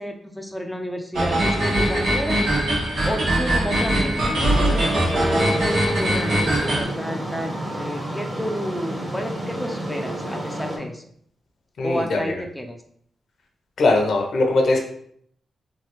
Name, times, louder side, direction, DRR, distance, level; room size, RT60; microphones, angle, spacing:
voice 1, 0.0-2.7 3.1-11.1 11.8-12.8, equal, 5° left, 3 dB, 0.4 m, -31 dB
sound 1, 1.1-6.8, right 1 dB, 75° right, 1.0 m, -21 dB
sound 2, 4.4-10.8, equal, 40° right, 1.2 m, -29 dB
voice 2, 11.8-12.3 13.8-14.8, left 2 dB, 70° left, 2 dB, 0.7 m, -20 dB
3.1 x 2.3 x 3.0 m, 0.64 s
cardioid pair, 70°, 0 cm